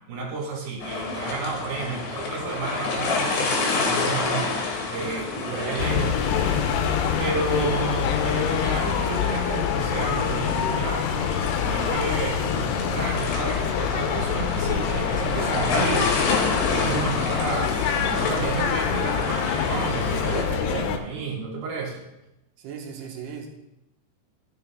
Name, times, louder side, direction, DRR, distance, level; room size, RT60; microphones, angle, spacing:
voice 1, 0.1-6.6 7.2-11.3 11.6-16.2 16.6-22.0, right 4 dB, 65° right, -1 dB, 3.4 m, -31 dB
sound 1, 0.8-20.4, left 4 dB, 65° left, 3.2 m, -29 dB
voice 2, 5.0-6.9 16.7-17.2 22.6-23.5, right 6 dB, 85° right, 2 dB, 3.3 m, -39 dB
sound 2, 5.8-21.0, left 8 dB, 85° left, 2.8 m, -26 dB
13.5 x 6.7 x 3.5 m, 0.93 s
omnidirectional pair, 4.7 m